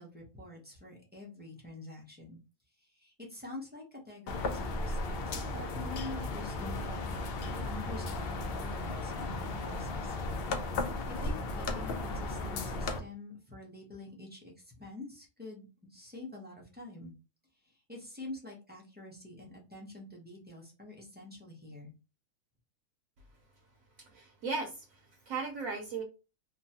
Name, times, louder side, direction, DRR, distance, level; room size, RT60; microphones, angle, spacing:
voice 1, 0.0-2.4 2.8-10.2 10.9-17.1 17.6-21.9, left 2 dB, 15° right, -3 dB, 0.4 m, -47 dB
sound 1, 4.3-13.0, left 2 dB, 80° left, 0.5 m, -35 dB
voice 2, 24.0-26.0, right 4 dB, 70° right, 2 dB, 1.0 m, -37 dB
2.9 x 2.2 x 2.7 m, 0.31 s
omnidirectional pair, 1.6 m